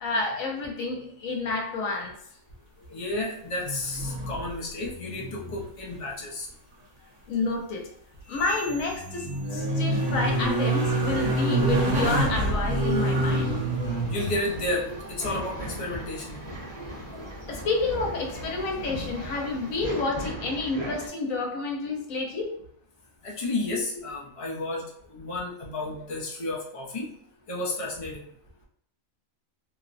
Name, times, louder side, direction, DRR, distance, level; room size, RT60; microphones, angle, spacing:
voice 1, 0.0-2.1 7.3-7.9 8.3-13.5 17.5-22.5, left 3 dB, 85° left, 1 dB, 1.1 m, -29 dB
voice 2, 2.9-6.5 14.1-16.4 23.2-27.1 27.5-28.3, left 2 dB, 40° left, -3 dB, 0.4 m, -32 dB
sound 1, 3.6-4.6 4.8-5.6 5.9-6.0 8.5-14.3 17.2-17.3, right 1 dB, 75° right, 1.3 m, -26 dB
sound 2, 8.2-10.5 10.7-11.1 11.6-11.8 12.4-12.6 13.2-13.3 14.1-14.2, equal, 55° right, 0.4 m, -45 dB
Male speech man speaking / Chatter / Rattle, 11.0-21.1, equal, 25° left, 0.8 m, -38 dB
3.0 x 2.0 x 2.5 m, 0.69 s
omnidirectional pair, 1.4 m